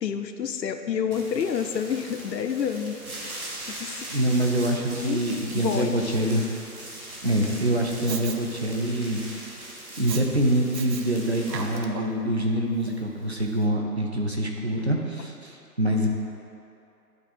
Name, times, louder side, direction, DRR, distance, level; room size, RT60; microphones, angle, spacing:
voice 1, 0.0-3.0 3.7-4.1 5.0-5.2 5.5-6.1, left 7 dB, 85° left, 7 dB, 0.6 m, -29 dB
sound 1, 1.1-11.8, right 1 dB, 60° right, 1.5 m, -40 dB
voice 2, 4.1-6.4 7.2-9.2 10.0-16.1, right 1 dB, 40° right, 0 dB, 0.7 m, -25 dB
Respiratory sounds, 8.1-8.4 9.9-10.2 10.7-11.0 11.4-12.2 12.8-12.9, right 6 dB, 85° right, 0.8 m, -36 dB
10.5 x 3.7 x 4.2 m, 2.7 s
figure-of-eight pair, 180°, 48 cm